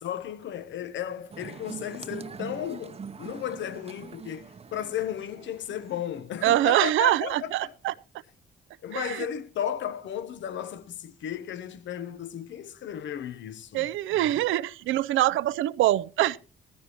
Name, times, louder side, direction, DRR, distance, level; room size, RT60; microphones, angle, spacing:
voice 1, 0.0-7.7 8.8-14.4, left 9 dB, 70° left, 1.0 m, -34 dB
sound 1, 1.3-6.4, right 6 dB, 30° right, 0.8 m, -43 dB
voice 2, 6.4-7.9 8.9-9.2 13.7-16.4, right 14 dB, 85° right, 0.5 m, -24 dB
15.5 x 15.0 x 3.0 m
cardioid pair, 90°, 20 cm